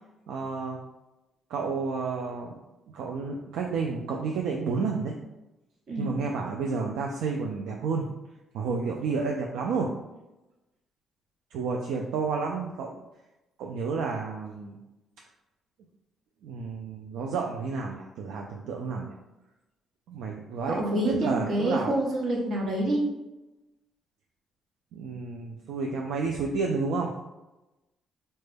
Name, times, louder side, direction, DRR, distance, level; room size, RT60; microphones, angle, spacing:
voice 1, 0.3-0.8 1.5-2.6 2.9-5.2 6.0-8.1 8.5-9.9 11.5-12.9 13.6-14.8 16.4-19.2 20.1-22.0 24.9-27.1, right 4 dB, 90° right, 0 dB, 0.3 m, -31 dB
voice 2, 20.7-23.0, right 1 dB, 65° right, -2 dB, 1.0 m, -27 dB
4.1 x 2.1 x 3.3 m, 1.0 s
cardioid pair, 90°, 0 cm